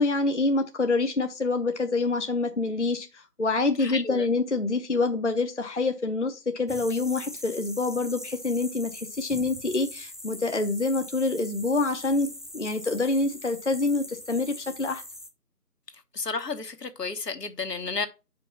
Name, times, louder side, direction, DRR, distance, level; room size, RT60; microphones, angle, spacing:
voice 1, 0.0-15.0, left 3 dB, 50° left, 0.6 m, -26 dB
voice 2, 3.8-4.2 16.1-18.1, left 4 dB, 85° left, 1.1 m, -32 dB
sound 1, 6.7-15.3, left 1 dB, ahead, 0.5 m, -42 dB
5.2 x 4.7 x 5.6 m
figure-of-eight pair, 165°, 47 cm